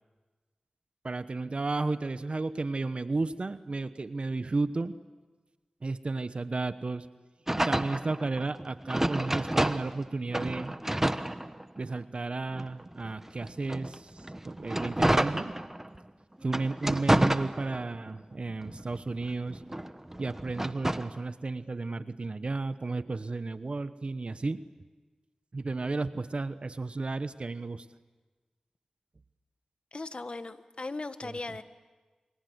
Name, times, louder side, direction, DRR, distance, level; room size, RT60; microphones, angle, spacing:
voice 1, 1.0-4.9 5.8-7.1 7.6-10.8 11.8-15.5 16.4-19.6 20.2-24.6 25.5-27.9 31.2-31.4, right 3 dB, 55° right, 12 dB, 1.1 m, -33 dB
sound 1, 7.5-10.0 10.3-12.0 12.5-16.0 16.4-18.1 18.5-21.2, right 1 dB, 20° right, 1.2 m, -30 dB
voice 2, 29.9-31.6, left 3 dB, 50° left, 10 dB, 1.5 m, -38 dB
29.0 x 24.5 x 8.1 m, 1.3 s
cardioid pair, 45°, 2 cm